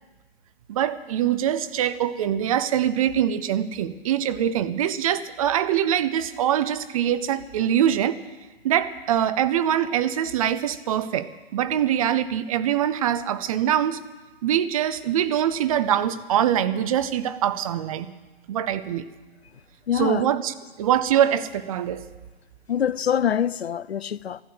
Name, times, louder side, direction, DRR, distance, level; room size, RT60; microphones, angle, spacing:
voice 1, 0.7-8.2 8.6-14.0 14.4-18.1 18.5-19.0 19.9-22.1, right 10 dB, 35° right, 0.7 m, -23 dB
voice 2, 19.9-20.2 22.7-24.4, left 9 dB, 80° left, 0.6 m, -24 dB
14.0 x 12.5 x 7.8 m
figure-of-eight pair, 130°, 31 cm